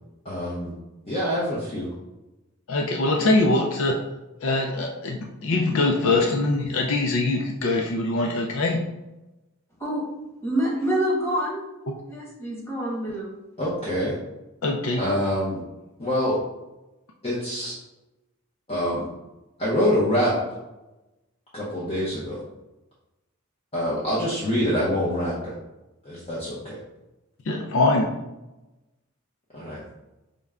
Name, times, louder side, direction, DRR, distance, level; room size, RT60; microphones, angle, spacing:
voice 1, 0.2-0.7 1.1-1.9 13.6-14.2 15.0-15.6 16.0-16.4 17.2-17.7 18.7-19.1 19.6-20.3 21.5-22.4 23.7-25.5 26.0-26.8 29.5-29.8, equal, 30° left, -8 dB, 0.8 m, -25 dB
voice 2, 2.7-4.0 4.4-8.8 14.6-15.0 27.5-28.1, left 2 dB, 65° left, 1 dB, 0.5 m, -23 dB
voice 3, 10.4-11.6 12.1-13.3, right 1 dB, 10° left, -6 dB, 1.4 m, -26 dB
5.1 x 2.2 x 3.5 m, 1.0 s
head